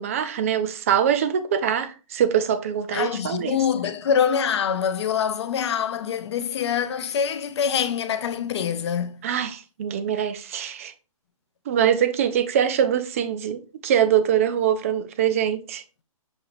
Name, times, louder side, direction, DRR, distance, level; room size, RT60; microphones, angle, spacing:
voice 1, 0.0-3.6 9.2-10.9 11.7-15.8, right 9 dB, 25° right, 0.3 m, -23 dB
voice 2, 2.9-9.2, left 8 dB, 50° left, 0.5 m, -25 dB
6.3 x 2.8 x 3.0 m
hypercardioid pair, 160°, 18 cm